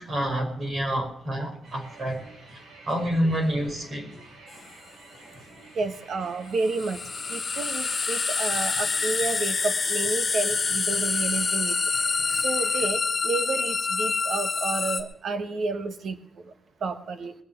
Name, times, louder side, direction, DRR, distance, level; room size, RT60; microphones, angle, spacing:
voice 1, 0.0-2.3 2.8-4.1 7.5-7.6 12.3-12.4, equal, 40° right, 1 dB, 5.6 m, -28 dB
sound 1, 1.6-12.9, right 2 dB, 85° right, 6.7 m, -49 dB
sound 2, 4.5-4.6 6.6-15.0, left 4 dB, 30° left, 2.1 m, -27 dB
voice 2, 5.7-7.0 7.3-11.8 12.3-16.2 16.4-16.5 16.8-17.3, right 4 dB, 65° right, 7 dB, 1.3 m, -30 dB
22.0 x 7.5 x 7.0 m, 0.69 s
wide cardioid pair, 160°, 0 cm